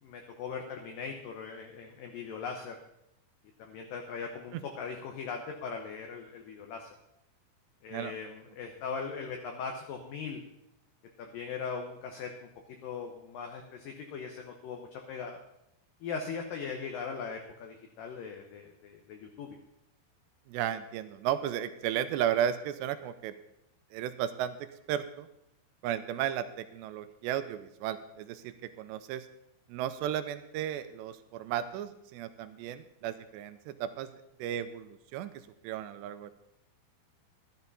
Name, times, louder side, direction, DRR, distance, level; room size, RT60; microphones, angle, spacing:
voice 1, 0.0-2.8 3.6-6.9 7.8-10.4 11.2-12.5 12.8-15.4 16.0-19.6, left 5 dB, 75° left, 3 dB, 2.0 m, -39 dB
voice 2, 20.5-23.3 23.9-25.3 25.8-29.3 29.7-34.1 34.4-35.3 35.6-36.3, right 10 dB, 80° right, 11 dB, 2.7 m, -34 dB
12.5 x 12.0 x 4.1 m, 0.84 s
omnidirectional pair, 5.3 m